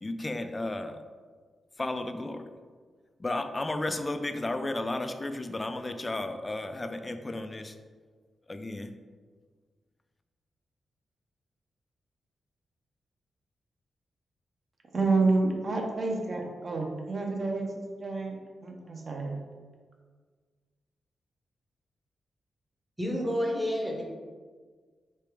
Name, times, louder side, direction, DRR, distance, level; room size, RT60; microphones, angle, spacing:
voice 1, 0.0-1.0 1.8-2.5 3.2-7.8 8.5-9.0, left 2 dB, 20° left, 8 dB, 0.3 m, -33 dB
voice 2, 14.9-19.4, right 3 dB, 40° right, 1 dB, 0.7 m, -29 dB
voice 3, 23.0-24.0, equal, 10° right, -1 dB, 0.8 m, -29 dB
3.4 x 3.3 x 4.7 m, 1.5 s
wide cardioid pair, 135°, 0 cm